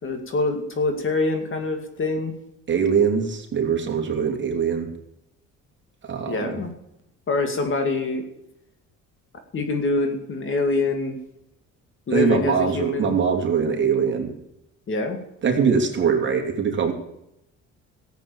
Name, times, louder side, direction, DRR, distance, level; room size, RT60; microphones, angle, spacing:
voice 1, 0.0-2.3 6.3-6.7 7.3-8.2 9.5-11.2 12.1-13.2 14.9-15.2, left 3 dB, 40° left, 6 dB, 2.5 m, -25 dB
voice 2, 2.7-4.9 6.0-6.6 12.1-14.3 15.4-16.9, right 6 dB, 40° right, 2 dB, 3.0 m, -22 dB
14.5 x 8.3 x 7.1 m, 0.83 s
cardioid pair, 120°, 30 cm